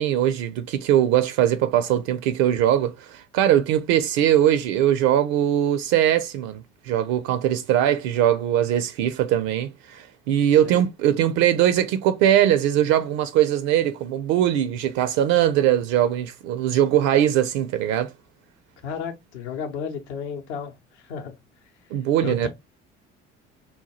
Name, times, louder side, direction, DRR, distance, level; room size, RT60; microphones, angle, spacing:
voice 1, 0.0-18.1 21.9-22.5, right 11 dB, 50° right, 0.4 m, -21 dB
voice 2, 18.8-21.4 22.2-22.5, left 6 dB, 65° left, 0.7 m, -33 dB
4.1 x 2.2 x 2.8 m
figure-of-eight pair, 55°, 37 cm